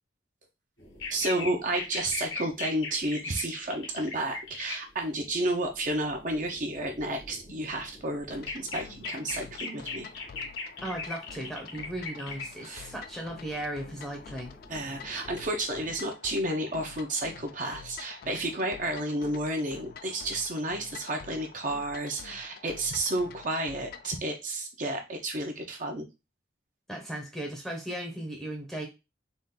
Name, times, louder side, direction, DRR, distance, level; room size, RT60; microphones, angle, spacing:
sound 1, 0.8-4.7 5.0-15.9, left 4 dB, 80° left, 1.6 m, -41 dB
voice 1, 1.1-10.1 12.6-12.9 14.7-26.1, right 1 dB, 40° right, 3 dB, 0.7 m, -31 dB
sound 2, 8.3-24.2, left 6 dB, 50° left, 0.3 m, -48 dB
voice 2, 10.8-14.5 26.9-28.9, right 1 dB, ahead, 1 dB, 0.7 m, -36 dB
4.0 x 2.5 x 3.7 m, 0.25 s
head